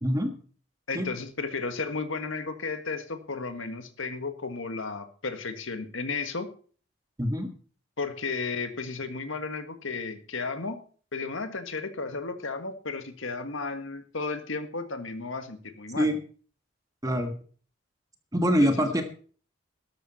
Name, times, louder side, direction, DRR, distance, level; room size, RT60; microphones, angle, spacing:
voice 1, 0.0-0.3 0.9-1.1 7.2-7.5 16.0-16.2 17.0-17.3 18.3-19.0, equal, 15° right, 6 dB, 1.5 m, -24 dB
voice 2, 0.9-6.5 8.0-10.8 11.1-16.1 18.6-19.0, left 4 dB, 70° left, 8 dB, 1.7 m, -34 dB
13.0 x 12.5 x 4.2 m, 0.42 s
head